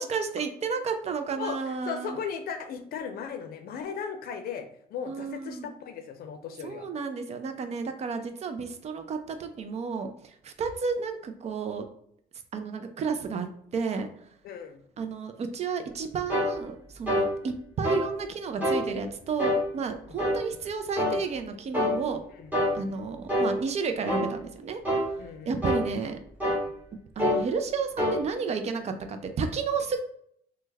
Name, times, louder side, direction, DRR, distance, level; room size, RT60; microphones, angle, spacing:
voice 1, 0.0-2.2 5.1-5.7 6.6-11.9 12.5-13.5 13.7-14.1 15.0-22.2 22.7-24.8 25.5-26.2 27.2-30.0, right 5 dB, 40° right, 7 dB, 0.5 m, -32 dB
voice 2, 1.4-6.9 14.4-14.8 20.1-20.2 22.3-22.9 25.2-25.9, left 7 dB, 65° left, 7 dB, 0.5 m, -37 dB
sound 1, 16.3-16.5 17.1-17.3 17.8-18.1 18.6-18.8 19.4-19.6 20.2-20.4 21.0-21.2 21.7-22.0 22.5-22.8 23.3-23.5 24.1-24.3 24.8-25.1 25.6-25.8 26.4-26.6 27.2-27.4 28.0-28.2, left 1 dB, 10° right, 1.2 m, -25 dB
3.2 x 2.1 x 3.3 m, 0.68 s
cardioid pair, 110°, 17 cm